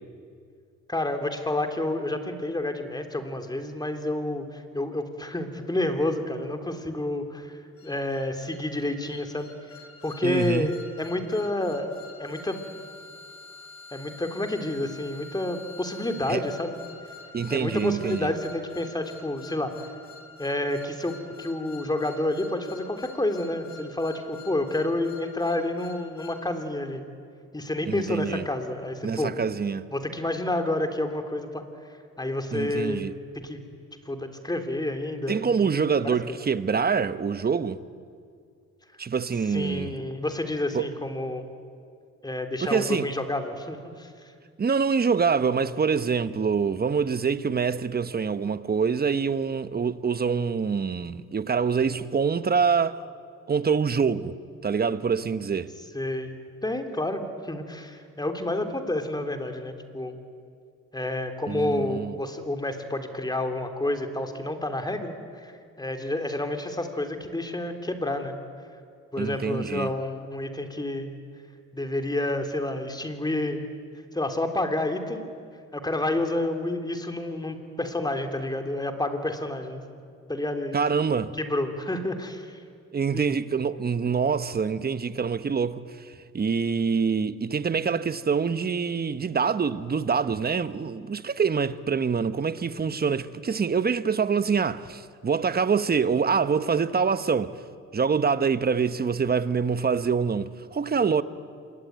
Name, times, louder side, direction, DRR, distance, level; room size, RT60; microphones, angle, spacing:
voice 1, 0.9-9.5 10.0-11.9 12.2-12.6 13.9-16.8 17.5-19.9 20.4-27.0 27.5-29.3 29.9-31.6 32.2-33.1 33.3-33.6 34.0-35.7 36.0-36.2 39.5-41.4 42.2-44.1 55.9-56.3 56.6-60.1 60.9-68.3 69.1-71.1 71.7-73.6 74.1-75.2 75.7-80.0 80.3-80.8 81.4-82.6 83.1-83.2, left 1 dB, 15° left, 3.2 m, -29 dB
sound 1, 7.8-26.4, left 4 dB, 50° left, 4.7 m, -47 dB
voice 2, 10.2-10.7 16.3-16.4 17.3-18.3 27.9-28.4 29.0-29.8 32.5-33.1 35.3-37.8 39.0-39.9 40.7-40.9 42.6-43.1 44.6-53.0 53.5-54.3 54.6-55.7 61.5-62.1 69.2-69.9 80.7-81.3 82.9-97.6 97.9-101.2, right 6 dB, 30° right, 1.1 m, -25 dB
26.5 x 22.5 x 9.5 m
cardioid pair, 90°, 30 cm